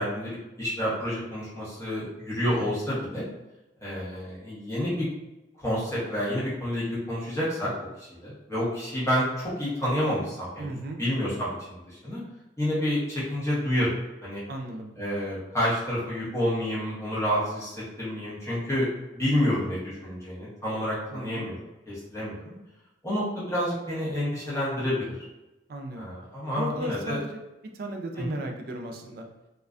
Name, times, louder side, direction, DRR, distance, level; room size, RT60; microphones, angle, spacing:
voice 1, 0.0-3.2 3.8-5.1 5.6-7.7 8.0-12.2 12.6-14.0 14.2-14.4 15.0-18.9 19.1-21.6 21.9-22.5 23.0-25.1 25.9-27.2 28.2-28.3, equal, 15° left, -9 dB, 0.8 m, -29 dB
voice 2, 10.6-11.0 14.5-14.9 21.1-21.5 25.7-26.1 26.6-27.4 27.7-29.3, right 1 dB, 55° right, 3 dB, 0.3 m, -35 dB
2.4 x 2.1 x 2.4 m, 1.0 s
head